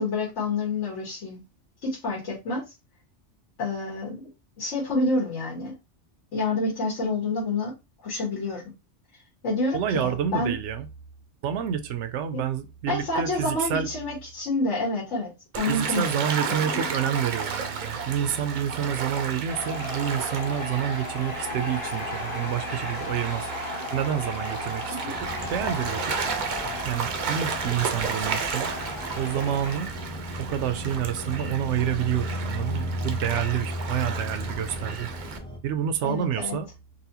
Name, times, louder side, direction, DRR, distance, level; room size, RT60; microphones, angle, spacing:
voice 1, 0.0-1.4 1.8-2.7 3.6-4.3 4.6-5.7 6.3-7.7 8.0-8.6 9.4-10.5 12.3-12.4 12.9-15.3 15.6-16.2 16.5-16.9 25.0-25.2 36.0-36.6, left 2 dB, 85° left, 1.5 m, -28 dB
voice 2, 9.7-10.9 11.4-13.9 15.7-23.5 23.9-26.2 26.8-28.7 29.2-29.9 30.4-35.1 35.6-36.7, right 9 dB, 80° right, 0.9 m, -28 dB
Gull seagull / Waves surf, 15.5-35.4, right 5 dB, 50° right, 0.6 m, -33 dB
sound 1, 19.5-29.8, left 2 dB, 35° left, 1.4 m, -36 dB
sound 2, 25.1-35.6, left 1 dB, 10° left, 0.3 m, -36 dB
4.1 x 2.2 x 2.8 m
omnidirectional pair, 1.2 m